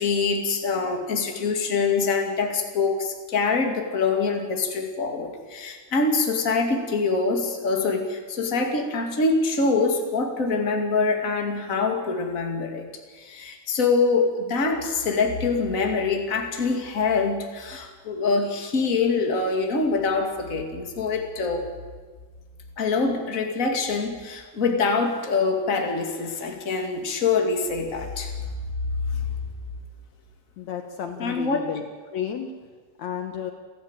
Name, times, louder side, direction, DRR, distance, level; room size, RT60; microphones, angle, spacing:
voice 1, 0.0-12.8 13.1-21.7 22.8-28.4 29.1-29.2 31.2-31.6, left 4 dB, 25° left, 3 dB, 2.4 m, -24 dB
voice 2, 30.6-32.5 33.0-33.5, left 8 dB, 65° left, 6 dB, 2.3 m, -32 dB
29.5 x 12.0 x 8.9 m, 1.5 s
omnidirectional pair, 3.7 m